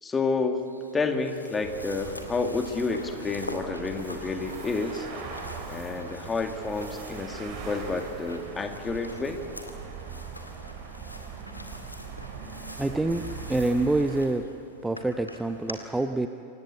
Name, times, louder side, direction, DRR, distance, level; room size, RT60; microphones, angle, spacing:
voice 1, 0.0-0.6 0.9-5.1 5.7-9.4, left 4 dB, 15° left, 6 dB, 2.0 m, -29 dB
sound 1, 0.6-15.7, left 1 dB, 85° left, 2.2 m, -45 dB
sound 2, 1.6-14.2, right 5 dB, 40° right, 4.0 m, -41 dB
voice 2, 12.8-13.2 13.5-14.4 14.8-16.3, right 2 dB, 5° right, 8 dB, 0.8 m, -26 dB
27.5 x 16.0 x 8.3 m, 2.8 s
figure-of-eight pair, 90°, 0 cm